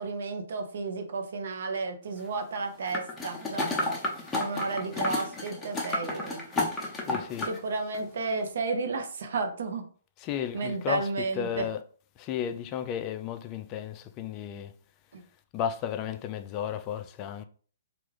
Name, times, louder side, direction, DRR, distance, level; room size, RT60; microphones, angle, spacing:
voice 1, 0.0-4.0 4.4-6.4 7.5-9.9 10.5-11.7 15.1-15.2, right 3 dB, 60° right, 0.7 m, -32 dB
sound 1, 2.9-7.6 7.9-8.0, left 2 dB, 15° left, 0.8 m, -31 dB
voice 2, 6.9-7.5 10.2-11.1 11.3-11.8 12.2-14.7 15.5-17.4, left 9 dB, 30° left, 0.3 m, -33 dB
3.4 x 2.4 x 3.2 m
figure-of-eight pair, 125°, 0 cm